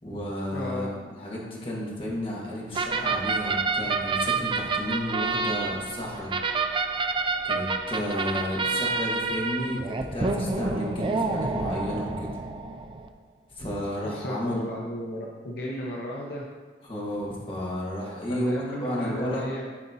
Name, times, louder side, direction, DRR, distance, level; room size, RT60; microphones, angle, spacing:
voice 1, 0.0-6.3 7.4-12.3 13.6-14.7 16.8-19.5, left 1 dB, 30° left, -5 dB, 1.6 m, -32 dB
voice 2, 0.5-0.9 14.0-16.4 18.3-19.6, equal, 60° left, -3 dB, 0.8 m, -34 dB
sound 1, 2.7-13.1, right 4 dB, 30° right, 0.4 m, -28 dB
11.5 x 4.3 x 2.8 m, 1.5 s
head